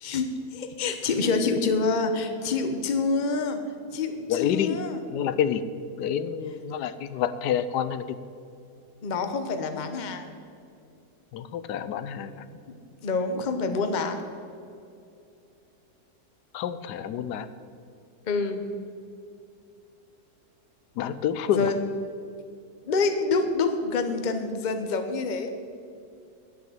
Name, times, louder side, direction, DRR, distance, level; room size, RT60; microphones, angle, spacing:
voice 1, 0.0-3.6 3.9-5.0 9.0-10.3 13.0-14.2 18.3-18.6 21.5-21.8 22.9-25.5, left 4 dB, 35° left, 7 dB, 0.8 m, -27 dB
voice 2, 4.3-4.8 5.1-5.6 6.0-8.2 11.3-12.4 16.5-17.5 21.0-21.7, left 9 dB, 90° left, 13 dB, 1.2 m, -28 dB
10.5 x 8.2 x 7.8 m, 2.6 s
omnidirectional pair, 1.7 m